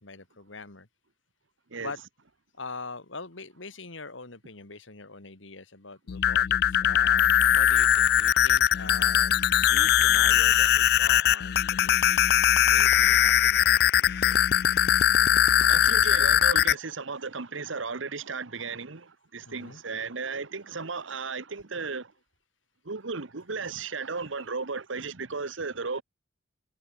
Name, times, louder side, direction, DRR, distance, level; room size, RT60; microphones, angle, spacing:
voice 1, 0.0-0.9 1.8-2.0 2.6-9.4 9.7-12.3 12.7-14.4 19.5-19.8 21.1-21.2, left 3 dB, 80° left, 2.4 m, -43 dB
sound 1, 6.1-16.7, left 10 dB, 50° left, 0.3 m, -21 dB
voice 2, 15.7-22.1 22.8-26.0, right 4 dB, 80° right, 1.3 m, -35 dB
head